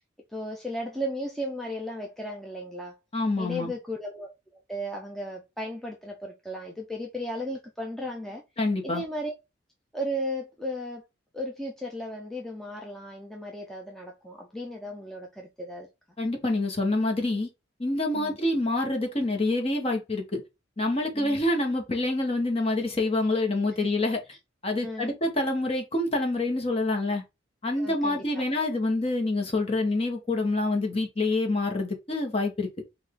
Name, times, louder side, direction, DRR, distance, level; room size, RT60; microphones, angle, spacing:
voice 1, 0.3-3.0 3.4-4.3 4.7-8.4 8.8-9.3 9.9-11.0 11.3-15.9 18.1-18.4 21.1-21.4 23.8-23.9 24.3-24.4 24.8-25.1 27.6-28.8, equal, ahead, 0.6 m, -35 dB
voice 2, 3.1-3.7 8.6-9.0 16.2-17.5 17.8-20.4 20.8-24.2 24.6-27.2 27.6-32.7, left 2 dB, 30° left, 1.3 m, -26 dB
5.4 x 2.6 x 3.7 m
head